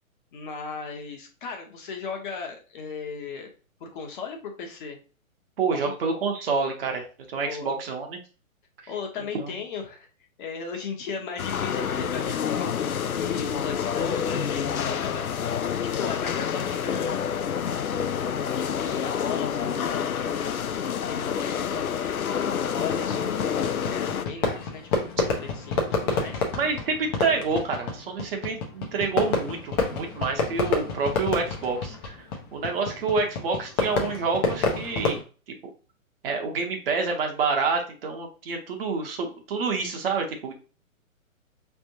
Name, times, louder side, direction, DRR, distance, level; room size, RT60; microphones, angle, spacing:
voice 1, 0.3-3.5 3.8-5.0 5.7-5.9 7.5-7.8 8.9-10.1 10.4-12.7 13.1-15.2 15.8-17.2 17.6-18.0 18.5-20.4 21.0-24.9 25.2-26.4, left 5 dB, 35° left, 2 dB, 1.1 m, -37 dB
voice 2, 5.6-8.2 9.3-9.5 26.6-35.2 35.5-35.6 36.2-40.5, right 4 dB, 45° right, 3 dB, 1.1 m, -28 dB
sound 1, 11.4-24.2, left 8 dB, 85° left, 0.6 m, -28 dB
Fireworks, 22.9-35.2, left 3 dB, 20° left, 0.6 m, -29 dB
5.3 x 3.5 x 2.8 m, 0.36 s
figure-of-eight pair, 125°, 42 cm